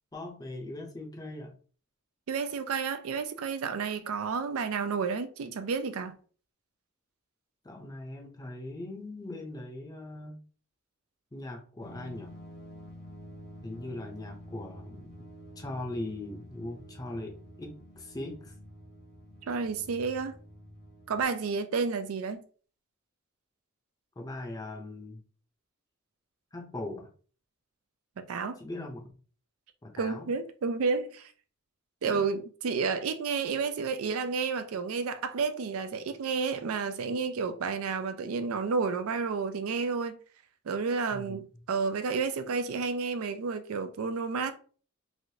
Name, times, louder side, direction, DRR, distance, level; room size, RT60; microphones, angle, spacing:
voice 1, 0.1-1.5 7.6-10.4 11.3-12.3 13.6-15.1 15.6-18.5 24.2-25.2 26.5-27.1 28.6-29.2 29.8-30.3 32.0-32.3 41.1-41.4, left 2 dB, 20° left, 0.6 m, -40 dB
voice 2, 2.3-6.2 19.5-20.4 21.1-22.4 28.2-28.6 29.9-31.3 32.0-40.2 40.7-44.5, right 5 dB, 90° right, 0.4 m, -31 dB
sound 1, 11.8-21.2, equal, 50° left, 0.8 m, -49 dB
3.2 x 2.5 x 2.7 m
head